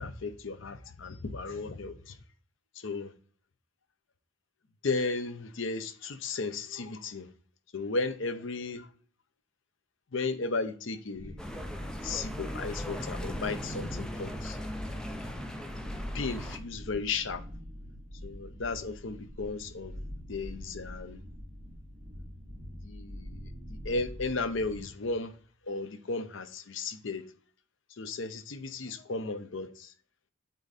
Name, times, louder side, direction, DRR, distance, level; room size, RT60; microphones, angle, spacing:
voice 1, 0.0-2.2 2.7-3.1 4.8-7.3 7.7-8.9 10.1-11.4 12.0-14.6 15.1-15.2 16.1-17.4 18.2-19.9 20.3-21.2 22.8-25.3 25.6-27.2 27.9-29.9, left 3 dB, 65° left, 0.7 m, -35 dB
sound 1, 11.1-24.8, equal, 35° right, 3.0 m, -43 dB
sound 2, 11.4-16.6, equal, 5° left, 0.6 m, -39 dB
8.3 x 3.9 x 4.1 m
head